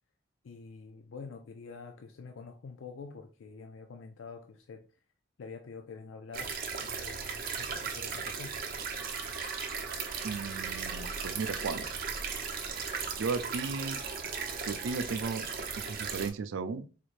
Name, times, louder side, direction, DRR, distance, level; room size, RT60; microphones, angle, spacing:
voice 1, 0.4-4.9 5.4-6.5 6.8-8.6, left 4 dB, 75° left, 0.4 m, -46 dB
sound 1, 6.3-16.3, right 6 dB, 45° right, 0.7 m, -37 dB
sound 2, 8.9-15.0, right 1 dB, 10° right, 0.5 m, -48 dB
voice 2, 10.2-11.9 13.2-14.0 14.6-15.4 15.8-16.9, right 4 dB, 80° right, 0.4 m, -35 dB
4.0 x 3.2 x 2.4 m
head